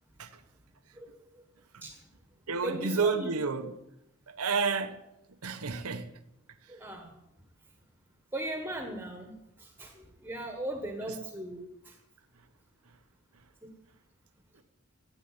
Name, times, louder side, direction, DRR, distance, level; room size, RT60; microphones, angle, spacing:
voice 1, 1.0-1.4 1.8-2.0 2.6-3.4 6.7-7.1 8.3-12.0 13.6-13.7, right 1 dB, 10° right, 1.4 m, -38 dB
voice 2, 2.5-3.7 4.3-5.0 5.4-6.2 11.1-11.2 14.6-14.7, right 4 dB, 90° right, 1.1 m, -31 dB
14.0 x 9.4 x 8.6 m
head